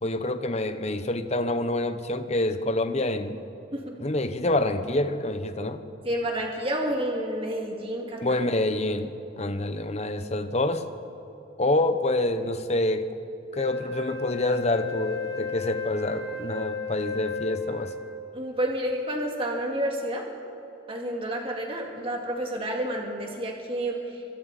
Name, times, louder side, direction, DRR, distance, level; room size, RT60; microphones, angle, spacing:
voice 1, 0.0-3.4 4.0-5.8 8.2-10.8 11.6-13.1 13.5-17.9, left 1 dB, 35° left, 9 dB, 1.0 m, -27 dB
voice 2, 6.0-8.2 18.3-20.2 20.9-24.0, right 1 dB, 30° right, 0 dB, 2.2 m, -29 dB
Wind instrument woodwind instrument, 13.5-18.3, left 4 dB, 55° right, 3.6 m, -34 dB
29.0 x 24.0 x 4.2 m, 2.8 s
head